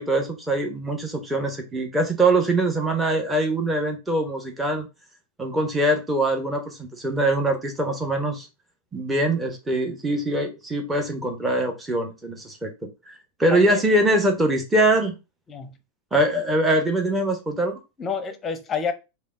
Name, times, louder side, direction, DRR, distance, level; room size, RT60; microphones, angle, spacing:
voice 1, 0.0-4.9 5.4-8.5 8.9-12.7 13.0-15.1 16.1-17.8, right 1 dB, 10° right, 1.0 m, -23 dB
voice 2, 13.5-13.8 15.5-15.8 18.0-18.9, left 6 dB, 20° left, 0.8 m, -28 dB
5.3 x 2.1 x 4.7 m
figure-of-eight pair, 90°, 0 cm